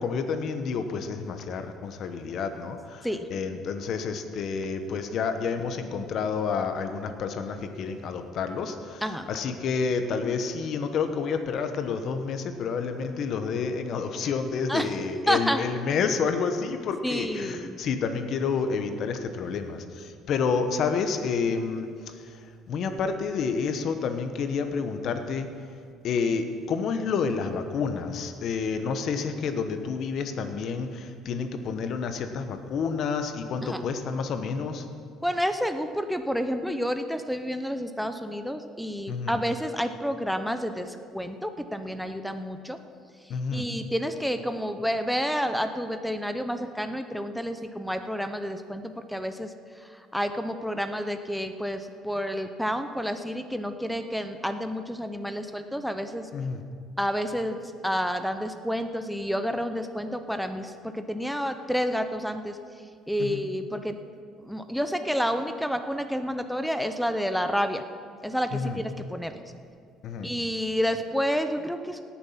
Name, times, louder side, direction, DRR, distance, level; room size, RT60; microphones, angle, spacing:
voice 1, 0.0-9.0 9.3-21.9 22.7-25.5 26.0-34.9 39.1-39.4 43.3-43.7 56.3-56.6 63.2-63.4 68.5-68.8 70.0-70.3, left 5 dB, 55° left, 8 dB, 1.1 m, -29 dB
voice 2, 15.3-15.6 17.0-17.8 33.6-33.9 35.2-42.8 43.5-49.5 50.1-56.3 57.0-62.6 63.1-64.0 64.4-67.8 68.2-69.3 70.2-72.0, equal, ahead, 8 dB, 0.7 m, -29 dB
18.0 x 7.1 x 5.8 m, 2.2 s
cardioid pair, 120°, 0 cm